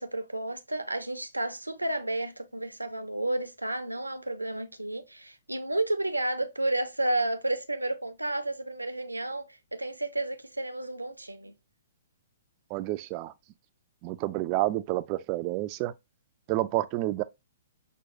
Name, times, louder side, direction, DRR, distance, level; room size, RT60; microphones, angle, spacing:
voice 1, 0.0-11.5, right 1 dB, 85° right, 0.5 m, -31 dB
voice 2, 12.7-13.3 14.0-15.9 16.5-17.2, right 16 dB, 35° right, 0.3 m, -29 dB
6.0 x 2.2 x 2.6 m
figure-of-eight pair, 115°, 0 cm